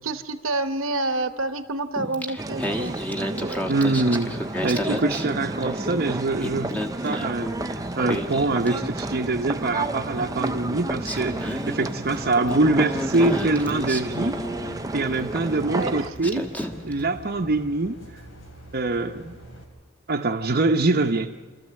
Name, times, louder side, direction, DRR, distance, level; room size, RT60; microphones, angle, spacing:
voice 1, 0.0-3.8 15.7-16.1, right 2 dB, 75° right, 10 dB, 1.0 m, -29 dB
Singing, 2.0-5.9 6.2-9.4 10.5-10.6 11.0-15.2 15.8-15.9 16.2-17.0, equal, 10° left, 1.3 m, -32 dB
sound 1, 2.4-16.1, right 2 dB, 15° right, 0.6 m, -31 dB
voice 2, 3.7-4.3 4.6-6.8 7.0-14.4 14.9-16.5 16.8-18.0 18.7-19.3 20.1-21.4, right 2 dB, 50° right, 3 dB, 0.8 m, -24 dB
sound 2, 7.3-19.6, right 1 dB, 75° left, 3.4 m, -45 dB
28.0 x 13.5 x 7.6 m, 1.4 s
head